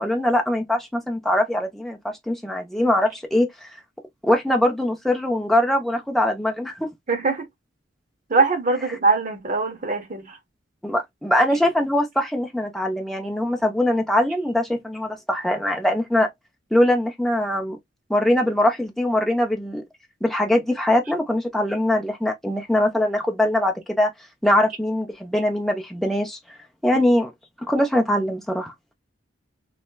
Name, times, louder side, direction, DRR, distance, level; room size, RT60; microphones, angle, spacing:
voice 1, 0.0-3.7 4.2-6.9 10.8-16.3 16.7-17.8 18.1-19.8 20.2-24.1 24.4-26.4 26.8-27.3 27.7-28.7, left 1 dB, ahead, 0.7 m, -22 dB
voice 2, 7.1-7.5 8.3-10.4, right 4 dB, 45° right, 1.0 m, -22 dB
3.2 x 2.8 x 2.2 m
head